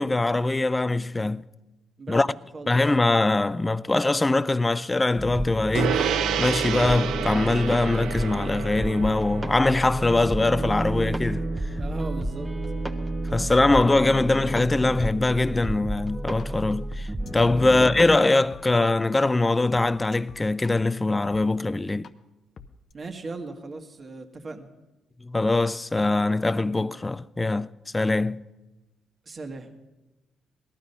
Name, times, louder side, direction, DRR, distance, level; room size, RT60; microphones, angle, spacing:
voice 1, 0.0-1.4 2.1-2.3 2.7-11.5 13.3-17.1 17.3-22.1 25.2-28.4, left 2 dB, 15° left, 0.4 m, -22 dB
sound 1, 5.2-18.2, right 1 dB, 10° right, 1.2 m, -31 dB
Gong, 5.7-15.5, right 8 dB, 80° right, 0.6 m, -32 dB
voice 2, 11.8-12.5 22.9-24.7 29.2-29.7, right 3 dB, 35° right, 1.5 m, -37 dB
sound 2, 16.4-16.5 16.9-19.3 19.6-20.7 21.3-21.4 22.0-22.1 22.6-22.9, left 5 dB, 50° left, 0.8 m, -47 dB
18.0 x 12.5 x 5.5 m
cardioid pair, 90°, 0 cm